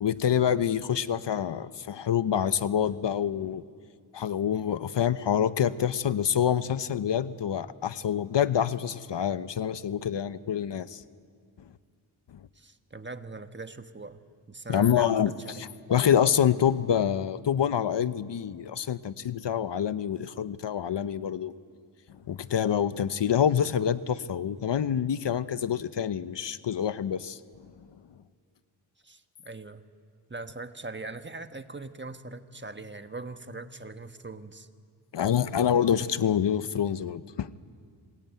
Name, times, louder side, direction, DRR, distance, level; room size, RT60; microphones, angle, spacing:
voice 1, 0.0-3.6 4.1-11.0 14.7-15.3 15.6-21.5 22.3-27.4 35.1-37.5, left 9 dB, 60° left, 14 dB, 0.9 m, -26 dB
voice 2, 12.5-14.2 14.5-15.6 29.0-29.8 30.3-34.7, right 3 dB, 25° right, 9 dB, 1.4 m, -41 dB
26.5 x 21.0 x 9.2 m, 2.1 s
cardioid pair, 65°, 48 cm